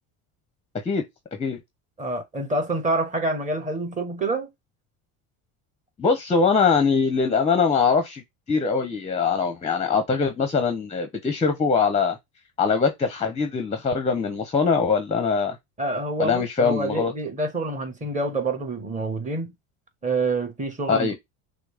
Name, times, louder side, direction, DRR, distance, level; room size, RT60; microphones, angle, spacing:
voice 1, 2.0-4.5 15.8-19.5 20.0-21.1, right 2 dB, 15° right, 1.2 m, -27 dB
voice 2, 6.0-8.2 8.5-12.2 12.6-15.6 16.2-17.1 20.9-21.1, left 5 dB, 15° left, 0.6 m, -22 dB
6.0 x 2.0 x 3.4 m
cardioid pair, 115°, 42 cm